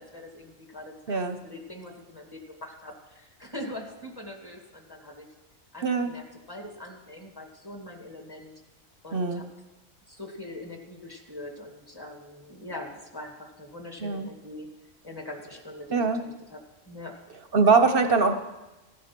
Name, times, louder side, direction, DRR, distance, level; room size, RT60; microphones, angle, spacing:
voice 1, 0.0-5.3 5.7-8.6 9.0-9.5 10.1-14.7 15.0-17.2 17.6-17.7, left 1 dB, 15° left, 2 dB, 2.2 m, -42 dB
voice 2, 9.1-9.4 14.0-14.3 15.9-16.2 17.5-18.3, right 4 dB, 50° right, 8 dB, 0.9 m, -22 dB
15.5 x 11.5 x 6.0 m, 1.1 s
omnidirectional pair, 1.4 m